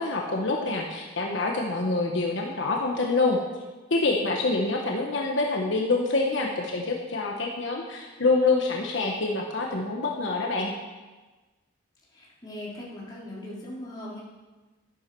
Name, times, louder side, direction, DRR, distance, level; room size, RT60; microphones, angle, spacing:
voice 1, 0.0-3.4 3.9-10.7, left 3 dB, 65° left, 0 dB, 1.2 m, -26 dB
voice 2, 12.1-14.2, left 1 dB, 20° left, -6 dB, 3.1 m, -39 dB
11.5 x 11.0 x 4.7 m, 1.2 s
head